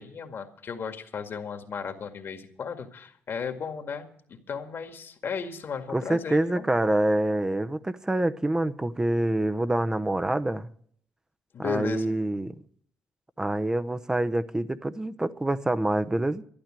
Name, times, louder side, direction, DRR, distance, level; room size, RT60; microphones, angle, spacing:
voice 1, 0.0-6.7 11.5-12.1, left 6 dB, 55° left, 6 dB, 2.0 m, -35 dB
voice 2, 5.9-10.7 11.6-12.5 13.4-16.4, right 1 dB, 15° right, 11 dB, 0.8 m, -26 dB
12.0 x 11.5 x 7.6 m, 0.62 s
cardioid pair, 75°, 5 cm